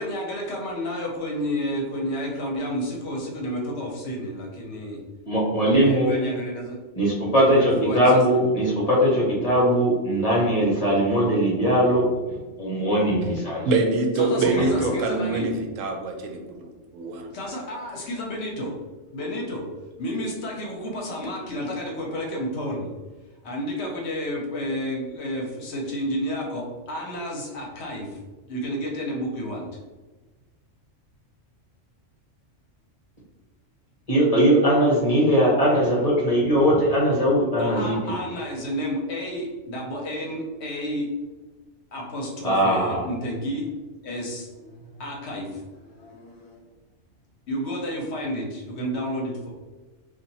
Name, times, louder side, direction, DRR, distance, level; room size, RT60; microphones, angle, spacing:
voice 1, 0.0-5.0 5.7-6.8 7.4-8.4 9.3-9.5 14.2-15.5 17.3-18.7 19.1-19.6 20.0-22.9 23.4-28.2 28.5-29.7 37.6-41.1 41.9-43.7 44.0-46.5 47.5-49.5, equal, 60° left, -1 dB, 0.9 m, -31 dB
voice 2, 5.3-6.1 7.0-12.0 12.6-13.7 14.5-14.9 34.1-38.1 42.4-43.0, equal, 35° left, -5 dB, 0.8 m, -20 dB
voice 3, 13.6-17.3, right 3 dB, 80° right, 4 dB, 1.0 m, -25 dB
2.8 x 2.5 x 4.0 m, 1.2 s
omnidirectional pair, 1.3 m